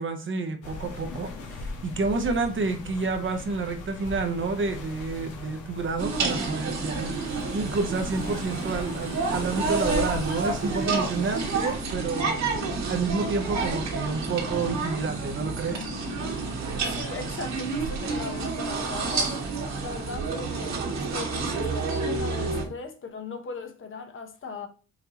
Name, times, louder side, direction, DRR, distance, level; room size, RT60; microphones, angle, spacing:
voice 1, 0.0-15.9, right 4 dB, 40° right, 0.9 m, -29 dB
sound 1, 0.6-11.8, left 3 dB, 85° left, 1.0 m, -39 dB
sound 2, 6.0-22.6, right 4 dB, 65° right, 1.9 m, -29 dB
Marimba xylophone, 11.4-12.9 13.2-13.9 14.3-18.5 18.8-19.6 20.0-20.2, left 4 dB, 60° left, 2.2 m, -47 dB
voice 2, 16.8-19.4 19.8-24.7, left 4 dB, 45° left, 0.8 m, -39 dB
5.8 x 2.7 x 2.9 m
cardioid pair, 90°, 30 cm